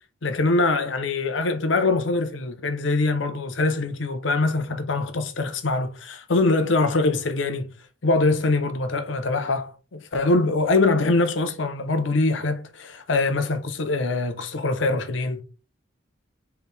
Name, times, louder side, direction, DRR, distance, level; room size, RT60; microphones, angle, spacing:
voice 1, 0.2-7.7 8.0-15.4, left 3 dB, 80° left, 0.8 m, -23 dB
4.6 x 3.4 x 3.3 m
head